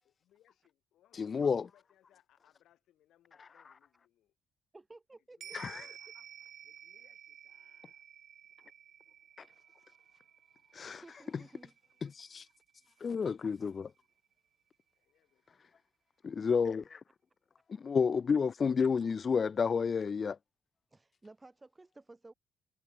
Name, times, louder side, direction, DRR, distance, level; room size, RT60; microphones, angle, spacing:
voice 1, 0.0-4.4 5.4-5.6 6.0-6.1 6.6-8.1 14.9-15.7, left 12 dB, 80° left, 7.5 m, -70 dB
voice 2, 1.2-1.6 5.5-5.8 10.7-11.0 12.0-12.4 13.0-13.9 16.2-17.0 17.7-20.4, left 6 dB, 40° left, 0.3 m, -30 dB
voice 3, 4.7-5.6 6.1-6.2 10.9-11.7 20.9-22.3, right 2 dB, 20° right, 2.3 m, -55 dB
sound 1, 5.4-14.0 14.3-14.4, right 9 dB, 65° right, 5.2 m, -54 dB
cardioid pair, 90°, 0 cm